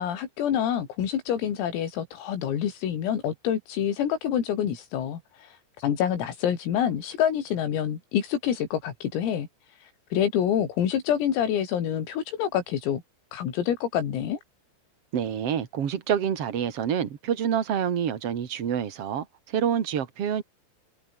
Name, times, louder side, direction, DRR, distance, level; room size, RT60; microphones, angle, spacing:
voice 1, 0.0-13.0 13.3-14.4, left 9 dB, 85° left, 6.1 m, -27 dB
voice 2, 15.1-20.4, right 8 dB, 55° right, 1.6 m, -27 dB
omnidirectional pair, 5.9 m